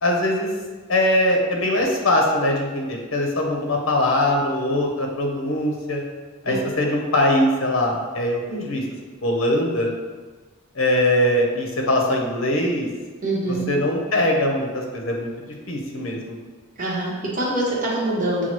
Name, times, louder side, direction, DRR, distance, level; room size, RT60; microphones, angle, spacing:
voice 1, 0.0-0.5 0.9-6.0 6.4-8.8 9.2-9.9 10.8-12.9 13.5-15.3 15.7-16.4, left 1 dB, 70° left, 0 dB, 0.7 m, -21 dB
voice 2, 13.2-13.6 16.8-18.5, right 1 dB, 40° right, -6 dB, 1.1 m, -24 dB
5.6 x 2.3 x 3.0 m, 1.4 s
head